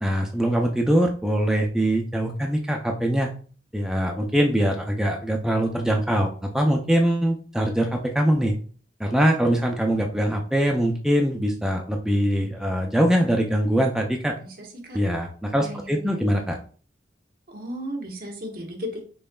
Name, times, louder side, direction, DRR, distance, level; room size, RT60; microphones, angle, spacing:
voice 1, 0.0-3.3 3.7-8.5 9.0-14.3 14.9-16.6, equal, 5° right, 1 dB, 0.4 m, -23 dB
voice 2, 14.4-15.0 15.6-16.4 17.5-19.0, equal, 55° right, 1 dB, 1.2 m, -35 dB
5.4 x 3.9 x 2.3 m, 0.41 s
head